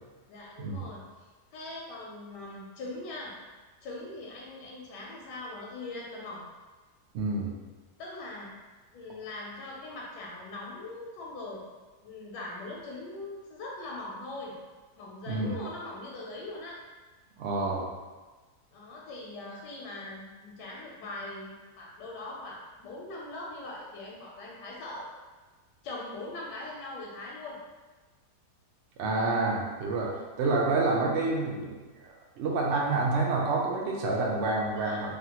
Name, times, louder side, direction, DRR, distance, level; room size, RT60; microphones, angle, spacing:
voice 1, 0.3-1.0 1.5-3.3 3.8-6.5 8.0-8.5 8.9-11.6 12.0-14.5 15.0-16.8 18.7-25.1 25.8-27.6 34.7-35.1, left 2 dB, 80° left, -3 dB, 1.2 m, -41 dB
voice 2, 7.1-7.5 15.3-15.6 17.4-17.8 29.0-31.8 32.4-35.1, right 3 dB, 80° right, -1 dB, 0.6 m, -28 dB
3.4 x 2.3 x 2.8 m, 1.3 s
omnidirectional pair, 1.8 m